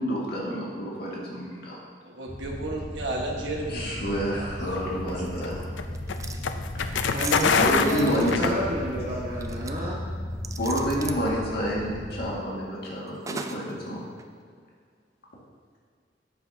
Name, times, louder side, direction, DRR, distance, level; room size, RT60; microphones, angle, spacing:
voice 1, 0.0-1.8 3.7-5.6 6.8-7.2 7.5-8.5 10.6-14.0, equal, 60° left, -5 dB, 2.0 m, -29 dB
voice 2, 2.0-4.5 5.0-5.2, right 2 dB, 75° right, -1 dB, 1.5 m, -33 dB
sound 1, 2.3-12.3, left 1 dB, 10° left, 2.1 m, -36 dB
sound 2, 4.7-9.1, left 6 dB, 80° left, 0.5 m, -26 dB
sound 3, 5.9-6.4 7.2-8.4 9.4-9.8 10.4-11.3 13.3-13.7 14.2-14.3, right 4 dB, 20° right, 0.4 m, -38 dB
voice 3, 7.1-10.0, right 1 dB, 45° right, -6 dB, 1.2 m, -30 dB
11.0 x 7.7 x 2.8 m, 2.1 s
head